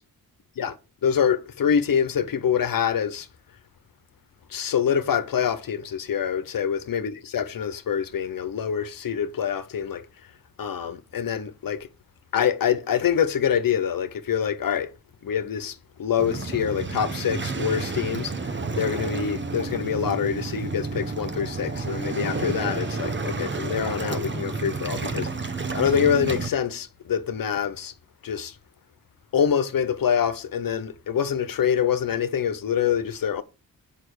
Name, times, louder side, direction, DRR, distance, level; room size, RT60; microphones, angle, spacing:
voice 1, 1.0-3.3 4.5-10.0 10.6-11.9 12.3-14.9 15.2-18.3 18.8-25.3 25.7-27.9 28.2-28.5 29.3-33.4, left 8 dB, 70° left, 1.0 m, -25 dB
Waves surf, 16.2-26.5, right 3 dB, 30° right, 1.3 m, -30 dB
7.7 x 5.5 x 6.5 m
cardioid pair, 60°, 36 cm